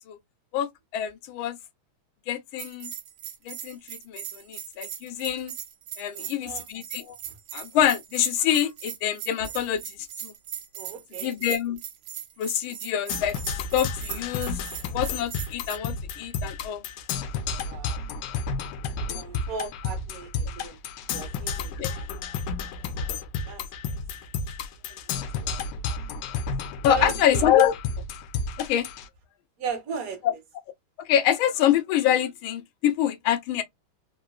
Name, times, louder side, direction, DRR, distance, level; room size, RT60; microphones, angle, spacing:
voice 1, 0.5-1.6 2.3-2.9 3.5-5.5 6.0-7.2 7.5-9.8 10.2-10.3 11.2-11.8 12.4-13.3 13.7-14.7 14.9-16.8 21.7-21.9 26.8-27.8 28.6-28.9 31.0-33.6, left 10 dB, 90° left, 1.5 m, -25 dB
Bell, 2.6-15.8, right 10 dB, 80° right, 1.4 m, -39 dB
voice 2, 6.1-6.7 7.2-7.4 10.7-11.3 17.6-18.0 19.1-20.8 21.1-22.1 23.1-24.0 24.8-25.7 26.8-27.5 29.6-30.2, right 6 dB, 55° right, 1.1 m, -37 dB
Percussion, 13.1-29.1, left 4 dB, 75° left, 1.1 m, -32 dB
3.9 x 2.2 x 2.3 m
omnidirectional pair, 2.2 m